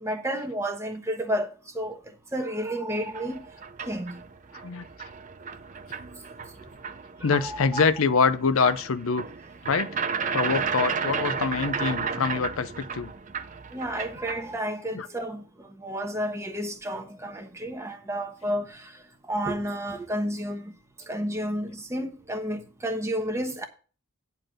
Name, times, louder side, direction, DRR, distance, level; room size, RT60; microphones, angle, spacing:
voice 1, 0.0-1.5 1.7-2.0 2.3-3.4 3.9-4.1 7.2-7.8 13.7-15.4 15.8-18.8 19.3-20.7 21.1-23.7, equal, 15° right, 1.1 m, -31 dB
sound 1, 2.9-14.6, right 5 dB, 35° right, 0.6 m, -33 dB
voice 2, 7.2-9.3 9.6-9.9 10.3-13.1 14.9-15.1, left 5 dB, 70° left, 0.5 m, -25 dB
9.5 x 4.4 x 6.3 m
head